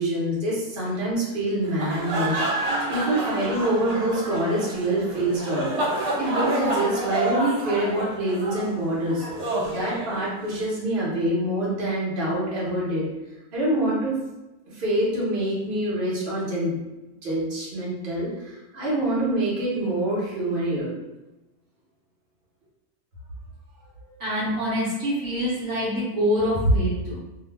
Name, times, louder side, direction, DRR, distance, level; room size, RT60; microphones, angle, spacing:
voice 1, 0.0-2.4 2.6-5.7 6.2-9.3 9.7-13.0 13.5-14.2 14.7-16.8 17.2-20.9, right 1 dB, 40° right, -7 dB, 1.1 m, -26 dB
sound 1, 1.6-10.6, right 2 dB, 80° right, 0.3 m, -29 dB
voice 2, 24.1-27.2, equal, 60° right, -8 dB, 1.2 m, -24 dB
2.7 x 2.3 x 3.3 m, 1.0 s
omnidirectional pair, 1.6 m